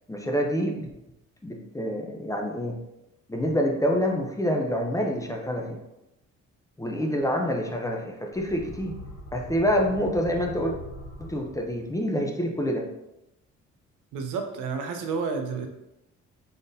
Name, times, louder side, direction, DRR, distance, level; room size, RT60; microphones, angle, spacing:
voice 1, 0.1-0.9 1.4-2.8 3.3-5.8 6.8-9.0 9.3-10.7 11.2-12.9, equal, 10° left, 1 dB, 0.6 m, -27 dB
sound 1, 8.3-12.0, left 1 dB, 90° left, 1.3 m, -42 dB
voice 2, 14.1-15.7, right 5 dB, 85° right, 5 dB, 0.6 m, -30 dB
3.8 x 3.6 x 2.7 m, 0.91 s
cardioid pair, 90°, 30 cm